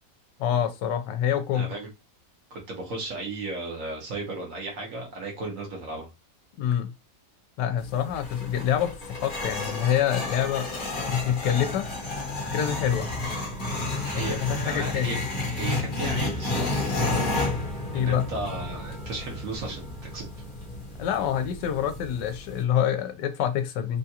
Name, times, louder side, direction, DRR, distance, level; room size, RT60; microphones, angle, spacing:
voice 1, 0.4-1.7 6.6-6.9 7.6-10.7 11.1-11.9 12.4-13.1 14.1-15.1 17.9-18.3 21.0-24.0, left 9 dB, 80° left, 1.2 m, -26 dB
voice 2, 1.5-1.9 2.5-6.1 14.1-15.2 15.5-16.8 17.9-20.2, right 2 dB, 55° right, 1.2 m, -35 dB
sound 1, 7.8-22.6, left 2 dB, 35° left, 0.9 m, -31 dB
3.5 x 2.4 x 2.7 m
omnidirectional pair, 1.9 m